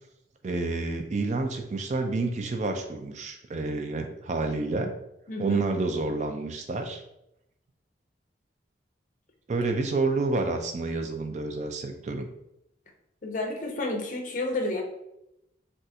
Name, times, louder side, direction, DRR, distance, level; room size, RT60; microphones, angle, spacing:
voice 1, 0.4-4.9 5.4-7.0 9.5-12.3, right 3 dB, 40° right, 6 dB, 0.3 m, -29 dB
voice 2, 5.3-5.6 13.2-14.8, left 2 dB, 45° left, 2 dB, 0.5 m, -30 dB
2.5 x 2.3 x 4.1 m, 0.84 s
head